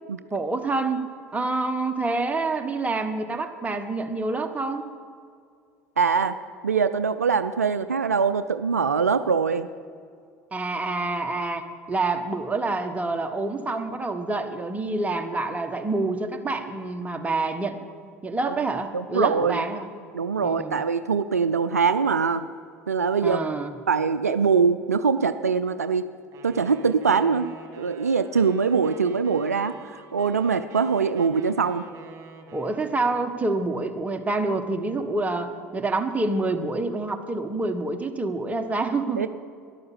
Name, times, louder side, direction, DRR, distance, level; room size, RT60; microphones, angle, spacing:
voice 1, 0.3-4.9 10.5-17.8 18.2-19.9 20.4-20.8 23.2-23.7 32.5-39.2, right 3 dB, 15° right, 6 dB, 1.3 m, -27 dB
voice 2, 6.0-6.4 6.6-9.7 18.5-18.6 18.9-19.6 20.1-22.5 22.9-23.4 23.9-26.1 26.4-27.5 27.8-31.9 39.2-39.3, right 5 dB, 85° right, 12 dB, 0.4 m, -23 dB
Wind instrument woodwind instrument, 26.3-33.3, right 4 dB, 35° right, 2.2 m, -46 dB
12.0 x 11.5 x 7.4 m, 2.2 s
figure-of-eight pair, 70°, 8 cm